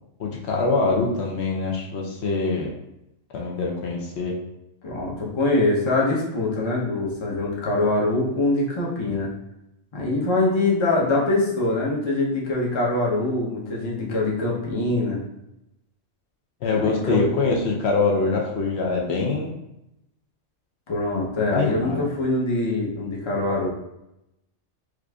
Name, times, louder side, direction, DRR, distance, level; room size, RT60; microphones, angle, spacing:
voice 1, 0.2-2.7 3.3-4.3 16.6-19.5 21.4-22.0, left 3 dB, 70° left, -1 dB, 0.8 m, -24 dB
voice 2, 4.8-9.3 9.9-15.2 16.8-17.2 20.9-23.7, left 2 dB, 30° left, -3 dB, 0.6 m, -23 dB
4.8 x 2.5 x 2.2 m, 0.86 s
omnidirectional pair, 1.2 m